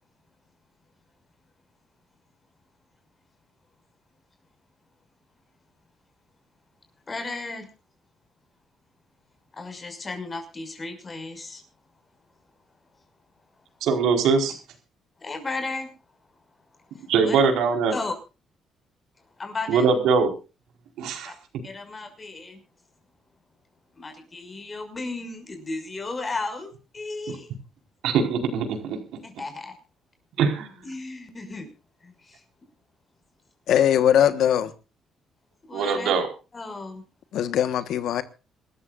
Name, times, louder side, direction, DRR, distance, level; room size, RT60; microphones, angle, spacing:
voice 1, 7.1-7.7 9.5-11.6 15.2-15.9 16.9-17.4 17.9-18.1 19.4-19.9 21.2-21.3 21.6-22.6 24.0-27.5 29.2-29.8 30.8-31.7 32.0-32.4 35.7-36.1 36.5-37.0, left 3 dB, 30° left, 6.0 m, -34 dB
voice 2, 13.8-14.5 17.1-17.9 19.7-20.3 21.0-21.3 28.0-29.0 30.4-30.7 35.7-36.3, right 5 dB, 80° right, 4.6 m, -22 dB
voice 3, 33.7-34.7 37.3-38.2, left 10 dB, 75° left, 1.3 m, -20 dB
26.5 x 14.0 x 2.5 m
cardioid pair, 95°, 0 cm